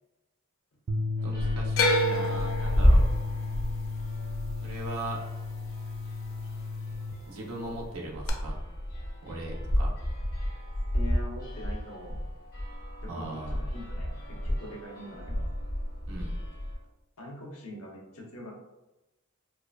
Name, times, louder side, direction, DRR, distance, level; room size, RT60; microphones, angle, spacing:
sound 1, 0.9-7.1, left 3 dB, 45° right, 0.3 m, -33 dB
sound 2, 1.2-16.8, equal, 40° left, 1.2 m, -31 dB
voice 1, 1.2-3.1 4.6-5.2 7.3-8.6 9.2-9.9 13.1-13.6 16.1-16.3, right 2 dB, 65° right, -2 dB, 0.9 m, -39 dB
sound 3, 1.8-6.0 6.2-6.9 8.3-8.4, left 1 dB, 60° left, 0.5 m, -30 dB
voice 2, 10.9-12.2 13.0-15.4 17.2-18.5, equal, 80° left, -2 dB, 0.9 m, -43 dB
4.5 x 2.5 x 2.3 m, 1.0 s
head